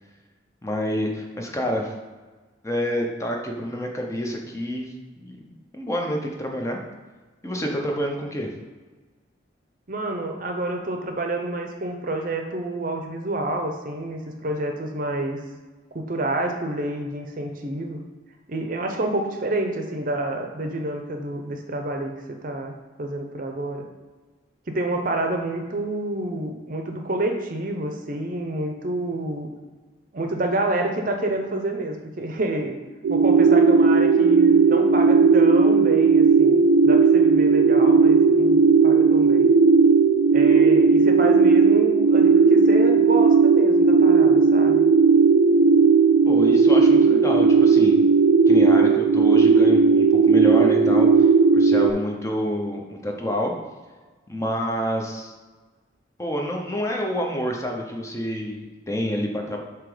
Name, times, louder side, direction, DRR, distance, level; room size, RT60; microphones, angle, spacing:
voice 1, 0.6-1.9 2.6-4.9 5.2-5.4 5.7-6.8 7.4-8.5 46.3-48.0 48.5-53.5 54.3-55.3 56.2-59.6, equal, 15° left, 1 dB, 0.7 m, -28 dB
voice 2, 9.9-15.4 15.9-18.0 18.5-22.7 23.0-23.8 24.7-29.5 30.1-32.8 33.1-39.5 40.3-44.8, right 1 dB, 45° right, 4 dB, 0.7 m, -28 dB
sound 1, 33.0-51.9, right 5 dB, 90° right, 0.3 m, -16 dB
7.4 x 3.0 x 4.9 m, 1.3 s
head